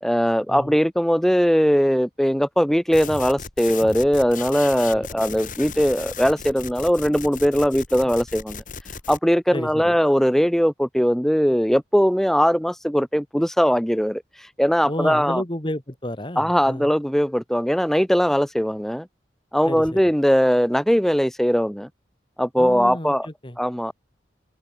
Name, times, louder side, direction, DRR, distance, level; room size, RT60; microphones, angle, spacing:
voice 1, 0.0-8.6 9.1-15.4 16.4-19.1 19.5-21.9 22.4-23.3 23.6-23.9, equal, ahead, 0.8 m, -20 dB
sound 1, 2.9-9.2, left 5 dB, 45° left, 3.1 m, -36 dB
voice 2, 9.5-10.0 14.8-16.9 19.6-20.0 22.6-23.6, left 1 dB, 25° left, 1.8 m, -31 dB
open air
head